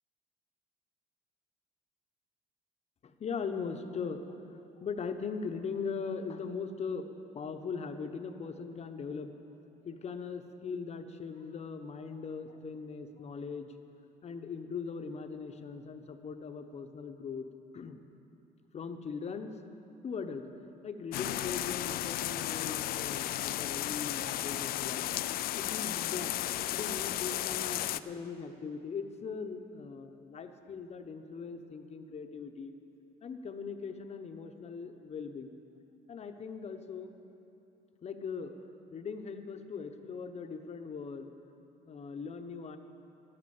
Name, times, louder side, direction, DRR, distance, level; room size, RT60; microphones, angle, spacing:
voice 1, 3.0-4.2 4.5-9.3 9.8-13.7 14.2-17.5 17.7-18.0 18.7-19.6 20.0-20.4 20.8-25.0 25.5-32.7 33.2-35.6 36.1-37.1 38.0-38.5 38.9-41.3 41.9-42.8, left 5 dB, 40° left, 7 dB, 0.9 m, -40 dB
sound 1, 21.1-28.0, left 14 dB, 60° left, 0.4 m, -34 dB
11.5 x 9.9 x 7.1 m, 2.9 s
cardioid pair, 110°, 17 cm